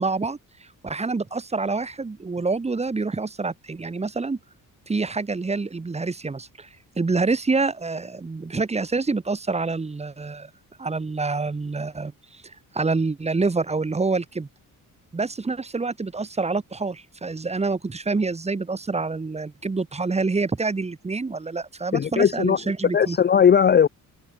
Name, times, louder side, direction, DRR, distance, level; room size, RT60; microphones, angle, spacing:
voice 1, 0.0-4.4 4.9-6.7 7.0-10.5 10.8-14.5 15.1-23.2, right 3 dB, 20° right, 1.9 m, -27 dB
voice 2, 21.9-22.6 22.9-23.9, left 8 dB, 30° left, 0.6 m, -18 dB
cardioid pair, 150°, 35 cm